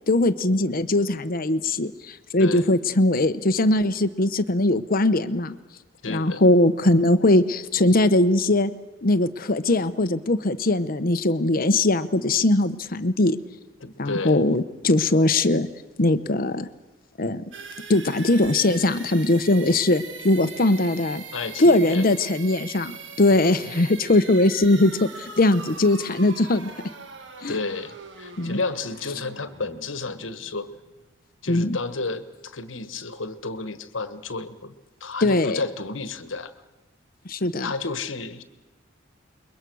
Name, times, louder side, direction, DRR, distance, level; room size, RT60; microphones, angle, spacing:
voice 1, 0.1-5.6 6.1-8.7 9.0-13.4 14.0-15.7 16.0-16.7 17.2-17.4 17.9-21.2 21.6-26.7 27.4-27.6 28.4-28.6 31.5-31.8 35.2-35.6 37.3-37.7, left 2 dB, 50° left, 12 dB, 1.0 m, -20 dB
voice 2, 6.0-6.4 13.8-14.4 21.3-22.1 23.3-23.7 27.5-30.7 31.4-34.7 35.0-36.5 37.6-38.4, left 3 dB, 85° left, 12 dB, 1.4 m, -32 dB
sound 1, 17.5-31.2, right 5 dB, 70° right, 1.8 m, -41 dB
28.5 x 22.5 x 6.3 m, 1.2 s
head